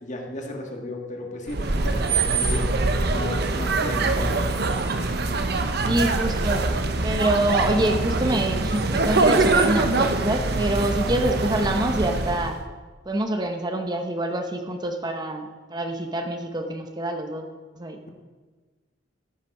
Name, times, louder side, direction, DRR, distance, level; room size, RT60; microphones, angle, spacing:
voice 1, 0.0-4.4 5.0-5.2, left 1 dB, 40° left, 2 dB, 1.7 m, -35 dB
sound 1, 1.5-12.6, right 3 dB, 60° right, 0.9 m, -23 dB
voice 2, 5.8-6.6 7.0-12.5 13.1-17.5 17.7-18.1, right 1 dB, 25° right, 4 dB, 0.8 m, -26 dB
13.5 x 7.3 x 5.4 m, 1.4 s
head